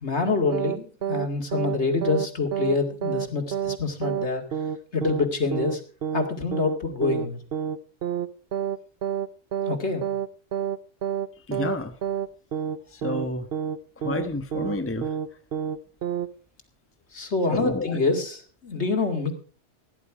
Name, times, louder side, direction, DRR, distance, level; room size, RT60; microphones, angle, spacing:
voice 1, 0.0-4.5 4.9-5.8 6.1-7.4 9.7-10.1 17.1-19.3, left 3 dB, 70° left, 4 dB, 2.5 m, -26 dB
sound 1, 0.5-1.3 1.5-1.8 2.0-2.3 2.5-2.8 3.0-3.3 3.5-3.8 4.0-4.3 4.5-4.8 5.0-5.3 5.5-5.8 6.0-6.3 6.5-6.8 7.0-7.3 7.5-7.8 8.0-8.3 8.5-8.8 9.0-9.3 9.5-9.8 10.0-10.3 10.5-10.8 11.0-11.3 11.5-11.8 12.0-12.3 12.5-12.8 13.0-13.3 13.5-13.8 14.0-14.3 14.5-14.8 15.0-15.3 15.5-15.8 16.0-16.3, right 8 dB, 60° right, 0.9 m, -28 dB
voice 2, 11.5-11.9 13.0-13.4 14.0-15.1 17.5-18.0, left 2 dB, 10° left, 7 dB, 1.1 m, -29 dB
16.5 x 10.5 x 4.8 m, 0.42 s
omnidirectional pair, 1.2 m